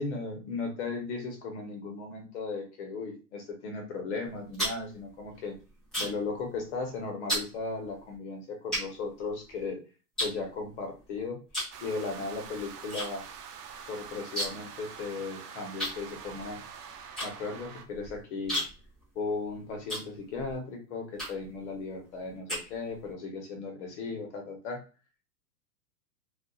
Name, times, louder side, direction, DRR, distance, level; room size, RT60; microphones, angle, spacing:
voice 1, 0.0-5.6 6.0-9.8 10.2-11.4 11.8-13.2 13.9-16.6 17.2-18.6 19.1-24.8, left 4 dB, 45° left, 2 dB, 0.9 m, -36 dB
sound 1, 4.2-6.3 6.6-6.9 7.3-7.5 8.1-8.2 8.7-9.7 10.2-11.0 11.5-11.8 12.1-13.1 13.3-13.4 13.7-14.7 15.0-15.1 15.8-20.6 21.1-21.6 22.0-23.1, equal, ahead, 0.4 m, -35 dB
sound 2, 11.7-17.8, right 7 dB, 80° right, 0.7 m, -45 dB
2.6 x 2.4 x 2.3 m, 0.33 s
hypercardioid pair, 150°, 47 cm